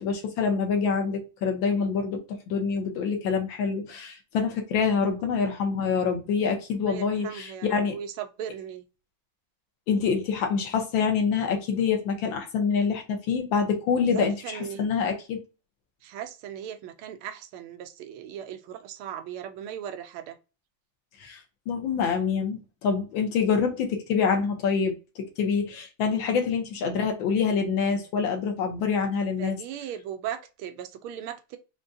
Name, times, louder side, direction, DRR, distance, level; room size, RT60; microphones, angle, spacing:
voice 1, 0.0-7.9 9.9-15.4 21.2-21.4 21.7-29.6, left 5 dB, 70° left, 1.5 m, -26 dB
voice 2, 6.8-8.8 14.1-14.9 16.0-20.4 29.4-31.6, right 9 dB, 85° right, 1.5 m, -38 dB
5.0 x 2.2 x 2.6 m
omnidirectional pair, 2.3 m